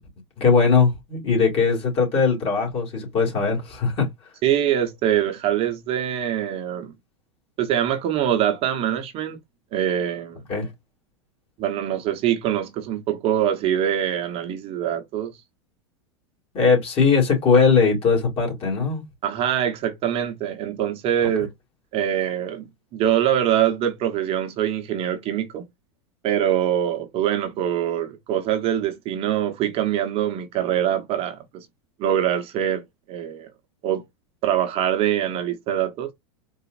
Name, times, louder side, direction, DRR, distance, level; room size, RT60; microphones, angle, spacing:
voice 1, 0.4-4.1 10.5-10.7 16.5-19.0, left 5 dB, 40° left, 2.0 m, -20 dB
voice 2, 4.4-6.9 7.6-9.4 9.7-10.4 11.6-15.3 19.2-21.5 21.9-25.6 26.2-31.7 32.0-32.8 33.1-33.5 33.8-34.0 34.4-36.1, right 10 dB, 40° right, 0.8 m, -24 dB
4.0 x 2.4 x 2.5 m
hypercardioid pair, 105°, 15 cm